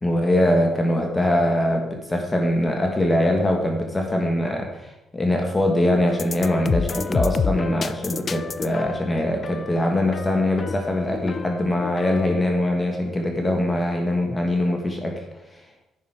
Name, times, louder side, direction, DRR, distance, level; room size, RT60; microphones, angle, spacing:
voice 1, 0.0-15.2, left 1 dB, 15° left, 2 dB, 1.5 m, -22 dB
sound 1, 6.1-12.5, left 5 dB, 45° left, 0.4 m, -30 dB
9.4 x 6.2 x 4.4 m, 0.92 s
cardioid pair, 90°, 0 cm